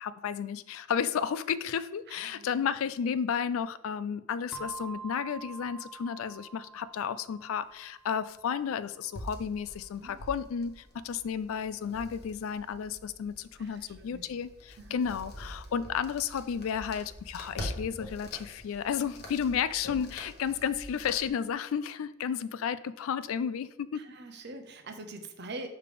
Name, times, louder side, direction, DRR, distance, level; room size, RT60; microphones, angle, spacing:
voice 1, 0.0-24.1, left 7 dB, 75° left, 0.3 m, -32 dB
voice 2, 2.1-2.6 10.0-10.2 13.6-14.2 14.8-15.0 23.9-25.7, right 2 dB, 50° right, 0.8 m, -44 dB
sound 1, 4.5-8.9, right 5 dB, 5° right, 0.6 m, -46 dB
sound 2, 9.1-21.3, equal, 50° left, 1.1 m, -45 dB
6.7 x 3.2 x 5.1 m
head